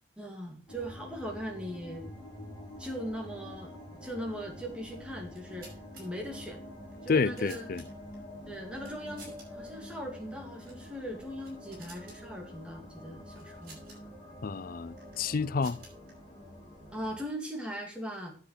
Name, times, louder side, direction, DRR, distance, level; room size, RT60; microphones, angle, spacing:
voice 1, 0.2-2.1 2.8-3.7 4.0-5.7 6.0-6.6 7.0-7.7 8.5-13.8 16.9-18.3, equal, 5° right, 2.8 m, -39 dB
sound 1, 0.7-17.2, left 1 dB, 15° left, 4.5 m, -47 dB
sound 2, 5.2-6.0 6.9-8.2 8.8-9.5 9.7-9.9 10.6-10.9 11.2-12.2 13.4-14.0 15.0-16.1, right 3 dB, 50° right, 5.6 m, -53 dB
voice 2, 7.1-7.8 14.4-15.8, left 4 dB, 50° left, 0.5 m, -29 dB
10.0 x 7.2 x 6.7 m
head